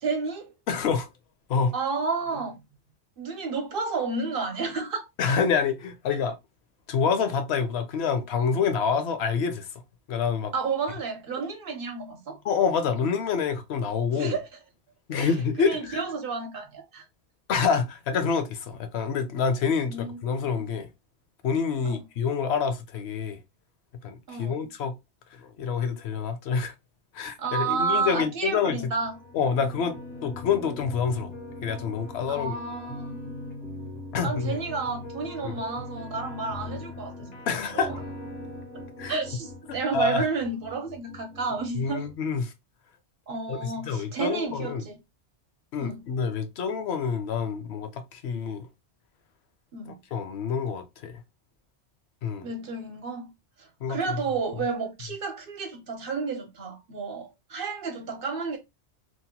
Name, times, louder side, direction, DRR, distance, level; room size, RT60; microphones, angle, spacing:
voice 1, 0.0-0.5 1.7-2.6 3.2-5.1 10.5-12.4 14.1-14.5 15.2-17.0 19.9-20.6 21.8-22.0 24.3-24.7 27.4-29.2 32.3-33.4 34.2-38.0 39.1-42.1 43.3-45.0 45.8-46.0 49.7-49.9 52.4-53.3 53.6-58.6, right 4 dB, 60° right, 0.8 m, -31 dB
voice 2, 0.7-1.1 1.5-1.7 5.2-6.4 6.9-9.7 10.1-10.5 12.4-14.4 15.1-16.0 17.5-20.9 21.4-23.4 24.0-24.9 25.3-26.7 27.1-28.9 29.3-31.3 31.6-32.5 34.1-34.6 35.4-35.6 37.5-38.0 39.0-39.2 39.7-40.2 41.7-42.5 43.5-44.8 45.7-48.7 50.1-51.2 52.2-52.5 53.8-54.2, left 6 dB, 70° left, 0.8 m, -27 dB
sound 1, 28.7-42.1, left 2 dB, 90° left, 1.2 m, -41 dB
2.9 x 2.1 x 2.7 m
omnidirectional pair, 1.1 m